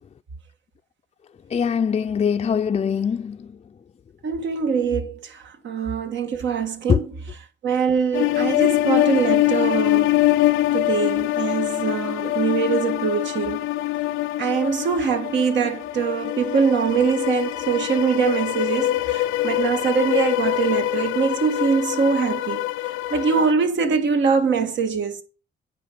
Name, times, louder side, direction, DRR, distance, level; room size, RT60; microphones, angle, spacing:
voice 1, 1.5-3.5 6.9-7.0, left 7 dB, 30° left, 0.5 m, -22 dB
voice 2, 4.2-7.2 7.6-10.1 10.7-13.6 14.4-22.6 23.1-25.2, right 6 dB, 65° right, 1.9 m, -23 dB
sound 1, 8.1-23.5, left 16 dB, 90° left, 0.5 m, -24 dB
9.4 x 5.0 x 7.1 m
cardioid pair, 90°, 20 cm